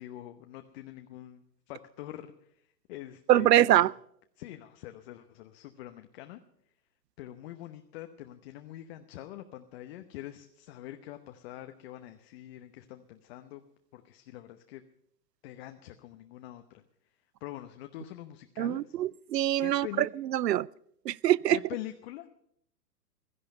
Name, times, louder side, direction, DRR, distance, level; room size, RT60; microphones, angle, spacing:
voice 1, 0.0-3.9 4.4-6.4 7.2-13.6 13.9-14.8 15.4-16.8 17.4-19.0 19.6-20.1 21.5-22.3, left 13 dB, 40° left, 1.0 m, -44 dB
voice 2, 3.3-3.9 18.6-20.1 20.3-20.7 21.1-21.6, right 13 dB, 85° right, 0.5 m, -24 dB
16.5 x 13.0 x 5.6 m
hypercardioid pair, 125°, 48 cm